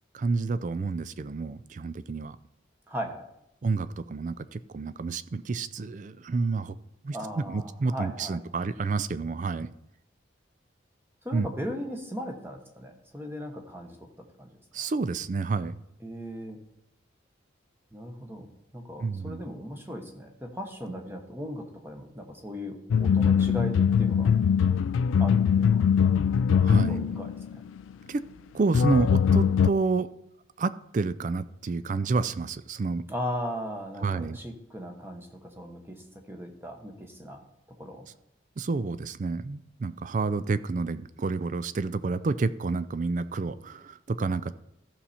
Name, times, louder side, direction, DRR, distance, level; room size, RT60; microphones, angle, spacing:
voice 1, 0.1-2.4 3.6-6.8 7.0-9.7 11.3-11.5 14.7-15.8 19.0-19.4 26.6-27.1 28.1-28.2 28.5-30.1 30.6-33.0 34.0-34.4 38.6-44.5, right 4 dB, 40° right, 14 dB, 0.4 m, -29 dB
voice 2, 2.9-3.2 7.1-8.4 11.2-14.1 14.4-14.5 14.7-14.9 16.0-16.6 17.9-24.3 25.2-25.9 26.5-27.6 33.1-37.4 37.8-38.1, equal, 10° right, 3 dB, 1.1 m, -38 dB
sound 1, 22.9-27.8 28.7-29.7, left 7 dB, 85° left, 0.3 m, -22 dB
14.0 x 5.5 x 4.3 m, 0.85 s
head